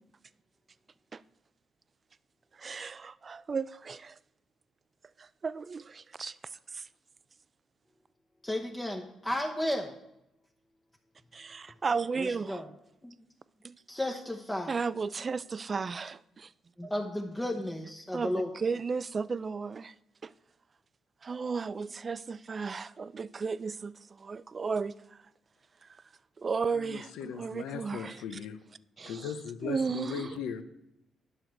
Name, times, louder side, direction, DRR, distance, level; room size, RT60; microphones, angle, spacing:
voice 1, 2.5-4.2 5.2-6.9 11.3-12.6 13.6-13.8 14.7-16.5 16.8-16.9 18.1-19.9 20.2-20.3 21.2-25.2 25.8-25.9 26.4-28.4 29.0-29.3 29.6-30.3, right 5 dB, 35° right, 0.3 m, -34 dB
voice 2, 8.4-9.9 12.2-12.7 13.0-13.1 13.9-14.7 16.8-18.5, left 1 dB, 10° left, 0.8 m, -33 dB
voice 3, 26.7-28.6 29.1-30.6, left 7 dB, 85° left, 0.7 m, -38 dB
9.9 x 6.3 x 4.6 m
cardioid pair, 90°, 0 cm